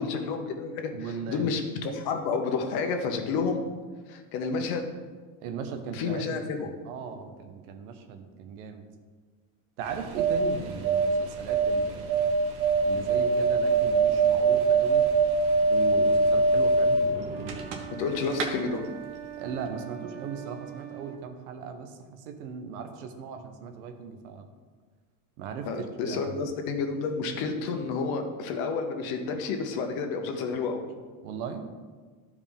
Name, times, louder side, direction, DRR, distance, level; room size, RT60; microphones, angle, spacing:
voice 1, 0.0-0.9 1.3-3.6 4.1-4.8 5.9-6.7 18.0-18.8 25.7-30.8, left 4 dB, 55° left, 5 dB, 1.1 m, -30 dB
voice 2, 0.9-1.6 5.4-8.9 9.8-12.3 12.8-15.1 15.7-17.1 19.4-24.5 25.4-26.4 31.2-31.7, right 6 dB, 90° right, 7 dB, 1.0 m, -38 dB
sound 1, 9.8-18.0 18.3-18.5, right 4 dB, 65° right, 1.2 m, -23 dB
sound 2, 17.3-21.2, right 10 dB, 25° right, 0.7 m, -42 dB
12.0 x 4.8 x 3.6 m, 1.5 s
cardioid pair, 150°, 42 cm